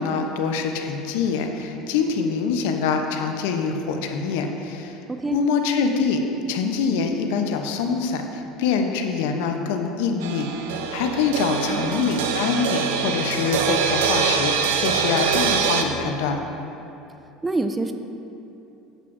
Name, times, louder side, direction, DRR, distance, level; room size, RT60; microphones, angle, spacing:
voice 1, 0.0-4.9 5.3-6.2 6.5-16.4, left 5 dB, 80° left, 4 dB, 0.7 m, -24 dB
voice 2, 5.1-5.4 11.7-12.1 17.4-17.9, right 2 dB, 15° right, 7 dB, 0.4 m, -27 dB
sound 1, 10.2-15.8, right 6 dB, 90° right, 0.6 m, -24 dB
9.7 x 7.5 x 2.6 m, 2.9 s
supercardioid pair, 105°, 0 cm